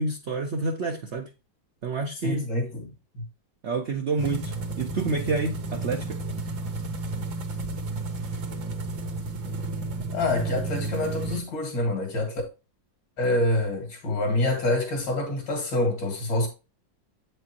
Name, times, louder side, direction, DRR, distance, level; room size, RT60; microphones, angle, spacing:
voice 1, 0.0-1.3 1.8-2.4 3.6-6.2, right 3 dB, 60° right, 0.7 m, -28 dB
voice 2, 2.2-2.9 3.1-3.2 10.1-12.4 13.2-16.5, left 1 dB, 80° left, 2.6 m, -26 dB
sound 1, 4.2-11.4, right 2 dB, 90° right, 1.9 m, -32 dB
8.3 x 5.1 x 2.9 m
omnidirectional pair, 2.0 m